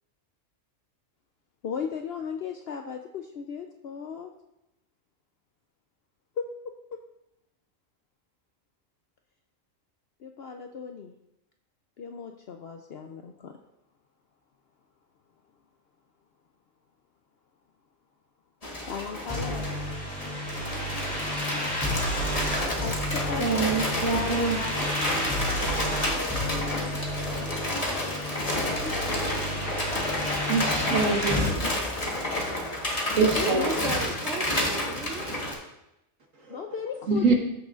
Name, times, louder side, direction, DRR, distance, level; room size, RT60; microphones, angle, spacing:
voice 1, 1.6-4.3 6.4-6.7 10.2-11.2 12.0-13.6 18.9-19.7 22.7-28.2 28.7-30.4 33.4-34.1 36.5-37.3, left 6 dB, 60° left, 4 dB, 0.8 m, -37 dB
sound 1, 18.6-35.5, left 1 dB, 30° left, 1.5 m, -30 dB
sound 2, 19.3-31.5, equal, 5° left, 3.3 m, -31 dB
voice 2, 23.4-24.6 25.4-25.7 26.0-26.6 27.0-28.0 29.3-30.1 30.4-32.2 33.1-33.7 35.5-35.6 36.5-36.6 37.1-37.3, right 4 dB, 80° right, 0 dB, 1.9 m, -28 dB
voice 3, 33.3-35.3, right 5 dB, 60° right, 1 dB, 1.0 m, -33 dB
14.0 x 6.3 x 2.5 m, 0.87 s
omnidirectional pair, 1.3 m